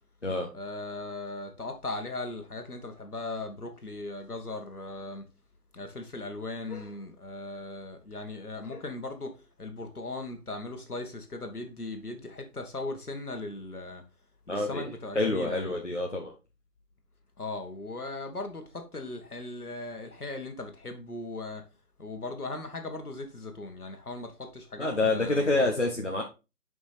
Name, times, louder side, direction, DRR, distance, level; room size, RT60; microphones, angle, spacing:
voice 1, 0.5-5.2 5.7-14.0 14.5-15.7 17.4-21.6 22.0-25.5, left 2 dB, 65° left, 1.6 m, -38 dB
voice 2, 14.5-16.3 24.8-26.2, left 2 dB, 45° left, 0.9 m, -27 dB
6.8 x 5.3 x 3.4 m
figure-of-eight pair, 180°, 48 cm